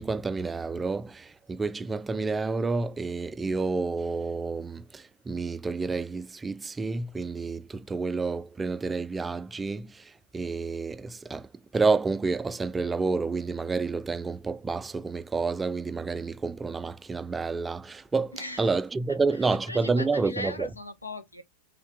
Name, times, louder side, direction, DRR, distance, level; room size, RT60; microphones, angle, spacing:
voice 1, 0.0-20.7, right 4 dB, 15° right, 0.4 m, -29 dB
voice 2, 18.3-18.7 19.3-21.4, left 1 dB, 85° left, 1.3 m, -39 dB
5.6 x 3.7 x 4.6 m
figure-of-eight pair, 90°, 0 cm